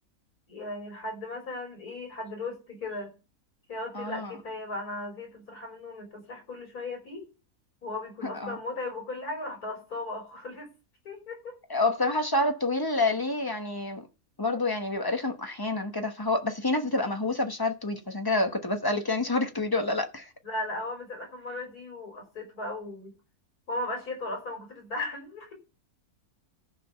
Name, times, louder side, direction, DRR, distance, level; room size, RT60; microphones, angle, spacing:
voice 1, 0.5-3.1 3.7-7.3 7.8-10.7 11.0-11.5 20.4-23.1 23.7-25.5, left 2 dB, 85° left, 5.6 m, -37 dB
voice 2, 3.9-4.3 8.4-8.6 11.7-14.1 14.4-20.3, left 2 dB, 15° left, 1.1 m, -28 dB
14.0 x 5.1 x 6.9 m
omnidirectional pair, 1.6 m